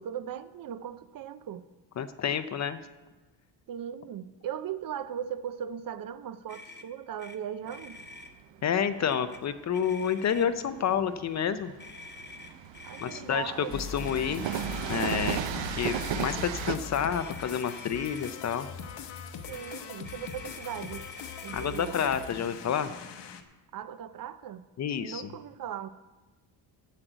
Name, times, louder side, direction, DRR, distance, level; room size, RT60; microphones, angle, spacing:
voice 1, 0.0-1.7 3.7-8.0 12.8-13.8 19.5-21.1 21.4-22.0 23.7-24.6 25.0-25.9, right 9 dB, 50° right, 0.5 m, -38 dB
voice 2, 2.0-2.8 8.6-11.7 13.0-14.5 14.9-15.4 15.7-18.7 21.5-22.9 24.8-25.2, left 8 dB, 40° left, 0.5 m, -29 dB
Motor vehicle (road), 6.5-6.9 7.2-7.4 7.6-8.3 9.1-9.4 9.7-10.6 11.8-13.2 14.0-15.4 15.8-16.4 17.0-18.3 19.4-21.9, left 2 dB, 20° left, 0.9 m, -47 dB
Train, 7.7-16.8, right 10 dB, 70° right, 0.8 m, -36 dB
sound 1, 13.7-23.4, left 7 dB, 65° left, 1.0 m, -41 dB
9.9 x 7.6 x 7.9 m
cardioid pair, 165°, 45 cm